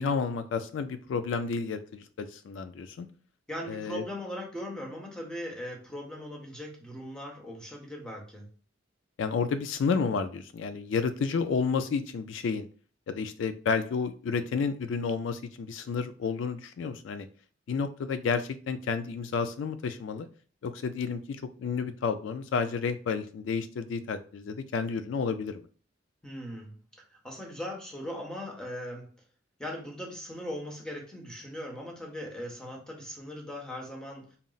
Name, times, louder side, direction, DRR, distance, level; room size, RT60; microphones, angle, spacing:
voice 1, 0.0-3.1 3.7-4.0 9.2-12.7 13.1-17.3 17.7-20.3 20.6-25.7, left 5 dB, 75° left, 10 dB, 0.3 m, -31 dB
voice 2, 3.5-8.5 26.2-26.7 27.1-29.1 29.6-34.4, equal, 5° left, -1 dB, 0.9 m, -39 dB
4.1 x 2.0 x 3.8 m, 0.39 s
head